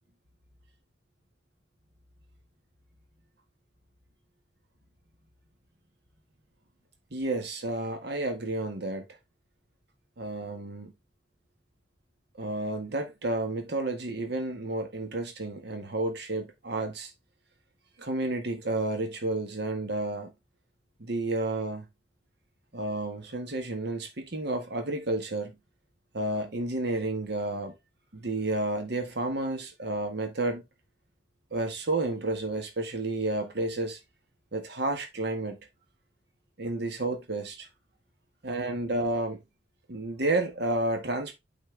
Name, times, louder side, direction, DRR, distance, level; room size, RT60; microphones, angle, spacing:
voice 1, 7.1-9.0 10.2-10.9 12.4-17.1 18.0-20.3 21.0-21.9 22.7-25.5 26.1-27.7 28.1-30.6 31.5-34.0 34.5-35.6 36.6-37.5 38.4-39.4 39.9-41.3, right 2 dB, 60° right, 1.5 m, -31 dB
8.9 x 4.3 x 3.3 m
head